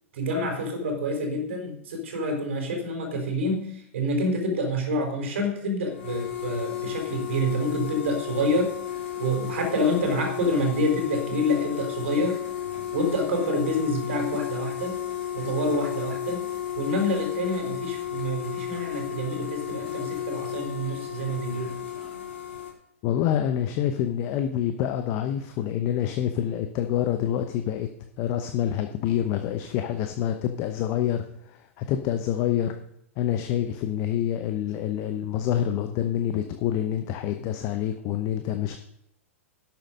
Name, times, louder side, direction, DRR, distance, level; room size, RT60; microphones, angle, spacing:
voice 1, 0.1-8.7 9.2-12.4 12.9-14.9 15.3-16.4 16.8-21.7, equal, 60° right, 3 dB, 4.0 m, -27 dB
sound 1, 5.9-22.7, left 10 dB, 60° left, 3.2 m, -33 dB
voice 2, 23.0-27.9 28.2-32.7 33.2-38.8, left 10 dB, 40° left, 7 dB, 0.9 m, -27 dB
12.0 x 7.7 x 5.2 m, 0.77 s
figure-of-eight pair, 105°, 7 cm